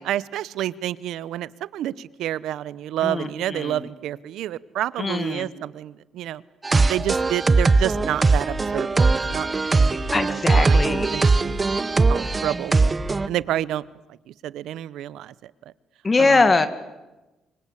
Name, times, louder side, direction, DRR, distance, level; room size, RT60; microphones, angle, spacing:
voice 1, 0.0-6.4 6.9-11.7 12.1-12.9 13.3-13.8 14.4-15.5 16.2-16.4, right 12 dB, 85° right, 18 dB, 0.9 m, -29 dB
voice 2, 3.0-3.9 5.0-5.5 10.1-11.1 16.0-16.7, left 3 dB, 30° left, 10 dB, 2.1 m, -22 dB
sound 1, 6.6-13.3, right 3 dB, 25° right, 1.0 m, -20 dB
25.5 x 25.0 x 8.5 m, 1.0 s
cardioid pair, 90°, 0 cm